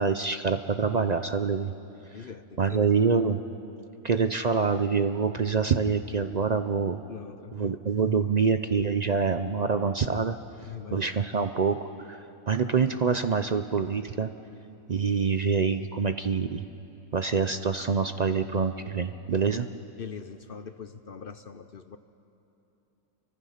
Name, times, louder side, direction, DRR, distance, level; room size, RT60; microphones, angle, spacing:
voice 1, 0.0-1.7 2.2-2.3 2.6-3.4 4.0-7.0 7.5-10.4 10.9-12.2 12.5-14.3 14.9-16.6 17.1-19.7, right 5 dB, 55° right, 9 dB, 0.4 m, -26 dB
voice 2, 2.1-3.1 7.1-7.8 10.6-11.1 20.0-22.0, left 6 dB, 50° left, 10 dB, 0.7 m, -42 dB
29.5 x 24.0 x 5.8 m, 2.9 s
omnidirectional pair, 1.5 m